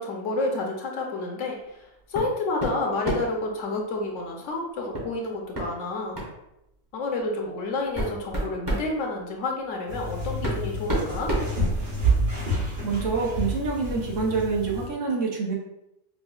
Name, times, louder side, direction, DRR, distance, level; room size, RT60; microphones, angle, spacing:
voice 1, 0.0-1.6 2.1-6.2 6.9-11.4, left 2 dB, 70° left, 1 dB, 1.0 m, -29 dB
sound 1, 2.1-2.3 2.6-3.4 4.9-5.1 5.5-5.7 6.1-6.4 7.2-7.3 7.8-8.9 9.9-10.0 10.4-12.2, right 1 dB, 20° right, 0.7 m, -29 dB
sound 2, 9.9-14.9, right 2 dB, 45° right, 0.9 m, -28 dB
voice 2, 12.8-15.5, right 4 dB, 70° right, -1 dB, 1.1 m, -26 dB
5.3 x 2.2 x 2.3 m, 0.86 s
omnidirectional pair, 1.4 m